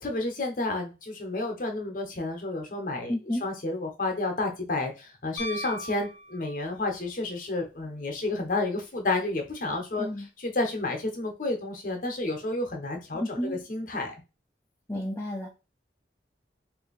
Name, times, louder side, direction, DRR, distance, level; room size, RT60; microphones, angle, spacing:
voice 1, 0.0-3.1 3.4-14.1, left 2 dB, 45° left, 3 dB, 0.8 m, -31 dB
voice 2, 3.1-3.4 10.0-10.3 13.2-13.6 14.9-15.5, left 1 dB, 15° left, -2 dB, 0.5 m, -31 dB
Piano, 5.4-7.0 9.3-9.4, equal, 75° left, 0.6 m, -38 dB
2.7 x 2.6 x 4.0 m, 0.30 s
head